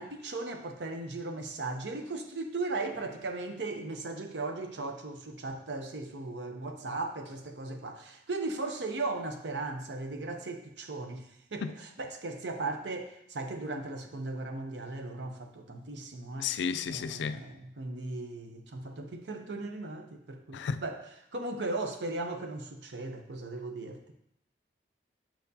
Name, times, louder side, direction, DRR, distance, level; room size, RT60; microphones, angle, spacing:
voice 1, 0.0-16.5 16.9-21.0 21.3-24.1, right 2 dB, 75° right, 0.7 m, -37 dB
voice 2, 16.4-17.4 20.5-20.8, left 6 dB, 75° left, 0.3 m, -32 dB
6.6 x 5.9 x 2.7 m
head